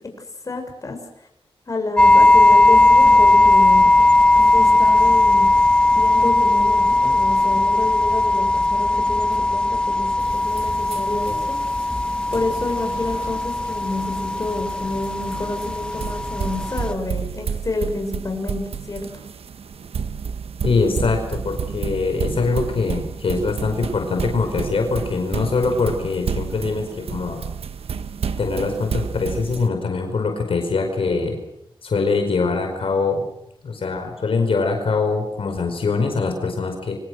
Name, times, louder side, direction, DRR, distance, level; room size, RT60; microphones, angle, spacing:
voice 1, 0.4-1.0 1.7-3.9 4.5-5.5 5.9-11.6 12.3-19.1, left 2 dB, 35° left, 3 dB, 6.7 m, -29 dB
sound 1, 2.0-16.9, left 2 dB, 10° left, 1.2 m, -17 dB
sound 2, 10.2-29.7, right 6 dB, 85° right, 1.3 m, -31 dB
voice 2, 20.6-27.4 28.4-31.4 31.8-33.2 33.6-37.0, left 4 dB, 70° left, 4 dB, 4.9 m, -23 dB
30.0 x 24.0 x 6.5 m, 0.76 s
wide cardioid pair, 115°, 10 cm